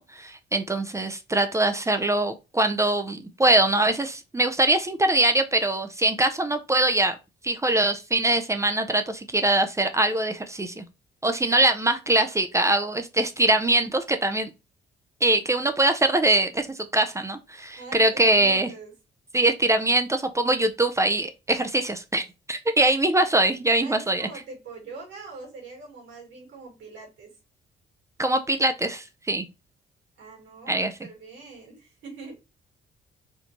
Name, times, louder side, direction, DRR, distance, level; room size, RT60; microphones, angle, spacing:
voice 1, 0.0-7.2 7.4-10.8 11.2-14.5 15.2-16.7 16.9-18.7 19.3-24.3 28.2-29.5 30.7-30.9, right 2 dB, 15° right, 0.5 m, -23 dB
voice 2, 17.8-18.9 23.8-27.3 30.2-30.7 31.0-32.4, right 3 dB, 75° right, 2.3 m, -43 dB
4.3 x 2.6 x 2.9 m
cardioid pair, 90°, 20 cm